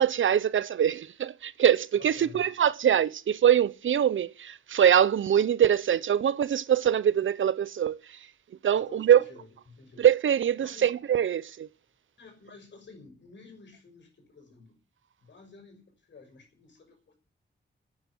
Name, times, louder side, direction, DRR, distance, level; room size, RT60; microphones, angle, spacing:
voice 1, 0.0-8.0 8.6-9.2 10.0-11.7, right 9 dB, 85° right, 0.7 m, -23 dB
voice 2, 2.0-2.5 8.7-10.0 10.6-10.9 12.2-14.8 15.2-17.1, left 3 dB, 70° left, 6.1 m, -52 dB
9.8 x 9.8 x 10.0 m
wide cardioid pair, 125°, 20 cm